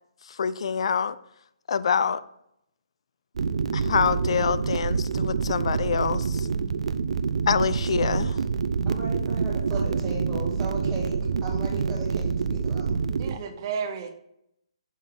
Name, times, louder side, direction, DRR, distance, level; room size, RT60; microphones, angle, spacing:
voice 1, 0.3-1.2 1.7-2.2 3.7-6.5 7.5-8.4, left 6 dB, 60° left, 0.3 m, -26 dB
sound 1, 3.4-13.3, right 5 dB, 75° right, 0.4 m, -27 dB
voice 2, 8.9-11.1 11.4-12.9, right 2 dB, 10° right, 1.0 m, -36 dB
voice 3, 13.2-14.1, right 6 dB, 35° right, 0.6 m, -33 dB
5.6 x 5.1 x 3.7 m
hypercardioid pair, 160°, 3 cm